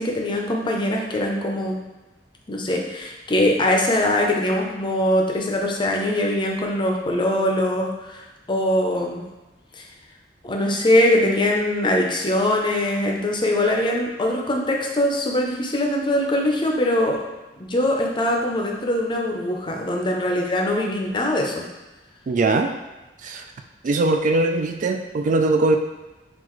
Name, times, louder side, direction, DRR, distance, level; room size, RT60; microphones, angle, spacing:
voice 1, 0.0-1.8 2.5-8.2 8.5-9.2 9.8-9.9 10.4-17.2 17.6-21.6, left 1 dB, 25° left, 0 dB, 0.6 m, -22 dB
voice 2, 22.3-22.7 23.2-23.4 23.8-25.8, right 2 dB, 45° right, 5 dB, 0.3 m, -20 dB
5.7 x 2.5 x 3.0 m, 1.1 s
head